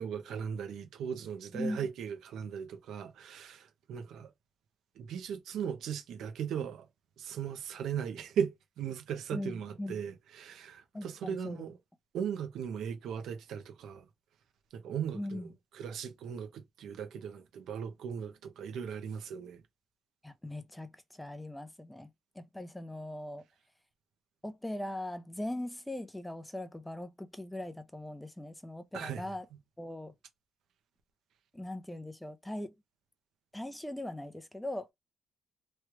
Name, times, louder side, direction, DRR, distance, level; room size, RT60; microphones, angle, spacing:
voice 1, 0.0-4.3 5.0-6.9 7.2-11.7 12.1-14.1 14.7-15.4 15.7-19.6 28.9-29.3, right 8 dB, 80° right, 0.7 m, -38 dB
voice 2, 1.5-1.9 9.3-10.0 10.9-11.6 15.1-15.5 20.2-22.1 22.4-23.4 24.4-29.5 29.8-30.1 31.5-32.7 33.5-34.9, left 1 dB, 5° left, 0.5 m, -40 dB
3.1 x 2.3 x 3.0 m
cardioid pair, 90°, 0 cm